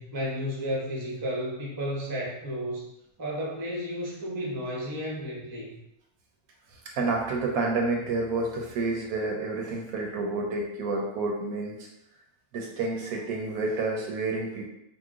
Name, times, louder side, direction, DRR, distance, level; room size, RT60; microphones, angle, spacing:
voice 1, 0.0-2.8 3.2-5.8, equal, 25° right, -4 dB, 0.5 m, -32 dB
voice 2, 6.9-11.9 12.5-14.7, right 3 dB, 75° right, 0 dB, 1.0 m, -29 dB
2.9 x 2.1 x 3.5 m, 0.82 s
omnidirectional pair, 1.6 m